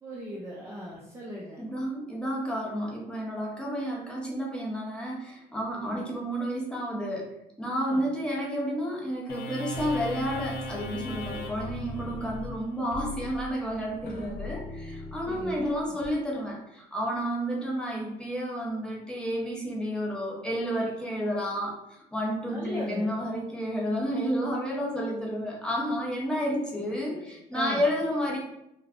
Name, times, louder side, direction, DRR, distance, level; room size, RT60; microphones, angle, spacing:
voice 1, 0.0-1.7 5.7-6.3 7.8-8.1 15.3-16.0 22.5-23.1 27.1-27.2 27.5-27.9, equal, 15° right, -5 dB, 0.5 m, -38 dB
voice 2, 1.6-7.3 7.6-28.4, equal, 5° left, -4 dB, 0.8 m, -31 dB
sound 1, 9.3-16.1, left 1 dB, 70° left, 0.6 m, -38 dB
2.3 x 2.3 x 3.5 m, 0.86 s
cardioid pair, 110°, 17 cm